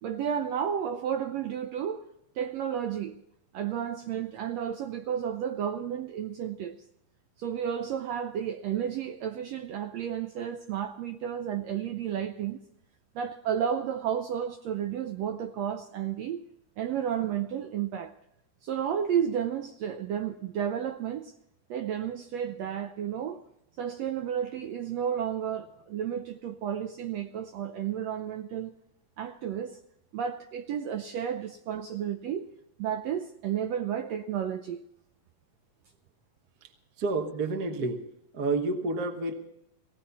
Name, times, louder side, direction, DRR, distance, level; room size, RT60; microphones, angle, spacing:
voice 1, 0.0-2.1 2.3-3.2 3.5-6.8 7.4-12.6 13.1-16.4 16.8-18.1 18.6-21.3 21.7-23.4 23.8-28.7 29.2-29.8 30.1-32.5 32.8-34.8, right 9 dB, 80° right, 1.5 m, -32 dB
voice 2, 37.0-38.0 38.3-39.3, right 3 dB, 60° right, 1.0 m, -29 dB
18.0 x 18.0 x 4.1 m
omnidirectional pair, 3.7 m